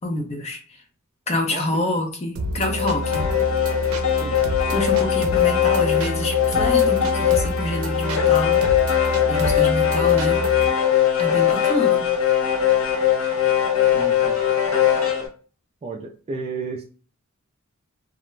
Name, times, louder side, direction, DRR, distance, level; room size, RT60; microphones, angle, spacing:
voice 1, 0.0-0.6 1.3-3.3 4.7-8.7 9.3-10.5 11.2-12.1, left 1 dB, 30° left, 0.5 m, -27 dB
sound 1, 2.4-10.7, right 2 dB, 90° right, 0.5 m, -29 dB
sound 2, 2.6-15.3, left 10 dB, 80° left, 0.7 m, -20 dB
voice 2, 13.9-14.4 15.8-16.8, right 4 dB, 30° right, 0.3 m, -33 dB
2.4 x 2.1 x 3.0 m
head